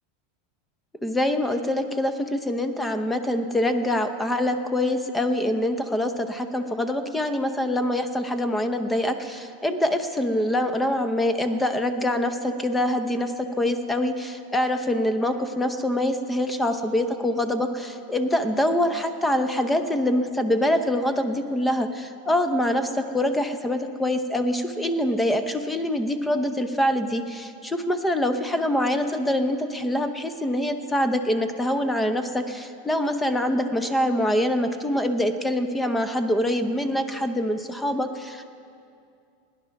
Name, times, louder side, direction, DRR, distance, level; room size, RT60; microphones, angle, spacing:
voice 1, 1.0-38.5, left 1 dB, 5° left, 8 dB, 0.7 m, -25 dB
17.0 x 10.5 x 5.8 m, 2.4 s
supercardioid pair, 145°, 0 cm